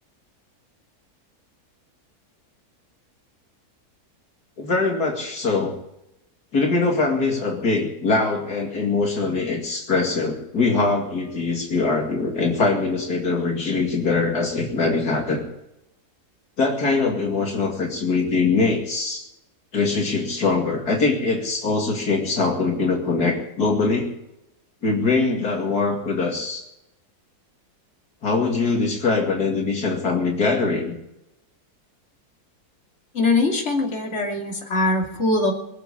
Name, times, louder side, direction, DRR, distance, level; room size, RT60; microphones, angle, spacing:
voice 1, 4.6-5.7 6.5-15.4 16.6-19.3 19.7-24.1 24.8-26.6 28.2-31.0, left 3 dB, 75° left, 1 dB, 2.9 m, -22 dB
voice 2, 33.1-35.5, left 2 dB, 45° left, 1 dB, 3.1 m, -22 dB
22.0 x 7.7 x 8.5 m, 0.85 s
omnidirectional pair, 1.7 m